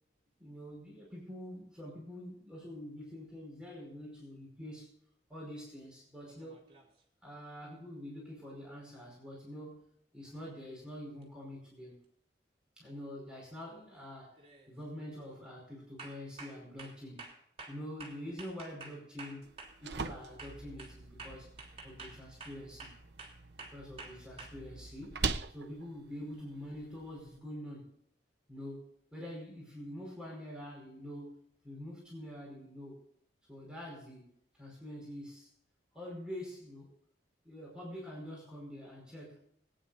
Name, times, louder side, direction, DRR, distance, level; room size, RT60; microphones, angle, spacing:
voice 1, 0.4-4.9 5.3-6.6 7.2-9.8 10.1-12.0 12.8-14.4 14.7-17.2 17.7-19.5 19.8-21.5 21.8-23.0 23.6-25.2 25.5-27.9 28.5-33.0 33.5-34.3 34.6-35.5 35.9-36.9 37.4-39.4, left 1 dB, 5° right, -4 dB, 5.1 m, -46 dB
sound 1, 6.3-7.0 11.2-11.3 12.8-13.1 13.6-13.9 14.4-14.7 15.1-15.4 16.0-20.1 20.4-24.5, right 3 dB, 35° right, 3.3 m, -50 dB
sound 2, 19.4-27.4, right 4 dB, 70° right, 0.9 m, -42 dB
21.5 x 9.8 x 2.7 m, 0.69 s
head